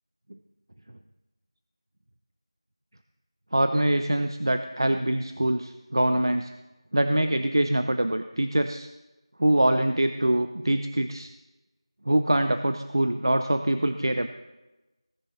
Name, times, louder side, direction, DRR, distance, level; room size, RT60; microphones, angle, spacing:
voice 1, 3.5-6.5 6.9-8.9 9.4-11.3 12.1-14.3, right 1 dB, 50° right, 9 dB, 0.6 m, -24 dB
19.5 x 10.5 x 4.0 m, 1.1 s
figure-of-eight pair, 175°, 3 cm